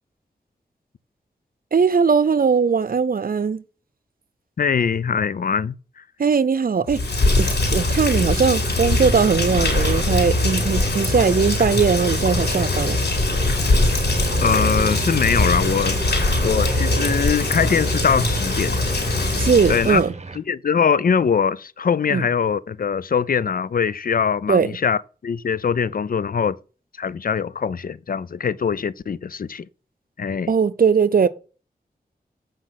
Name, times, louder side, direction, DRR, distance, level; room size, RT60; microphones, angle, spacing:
voice 1, 1.7-3.6 6.2-7.0 7.4-13.0 19.4-20.1 22.1-22.2 24.5-24.7 30.5-31.3, right 6 dB, 60° right, 0.7 m, -19 dB
voice 2, 4.6-6.0 14.4-18.8 19.7-20.0 20.3-26.6 27.0-29.7 30.2-30.5, left 6 dB, 60° left, 0.5 m, -22 dB
Rain, 6.9-20.0, left 2 dB, 85° left, 4.2 m, -21 dB
sound 1, 9.5-20.4, right 4 dB, 40° right, 1.3 m, -33 dB
8.3 x 5.2 x 5.8 m
cardioid pair, 55°, 17 cm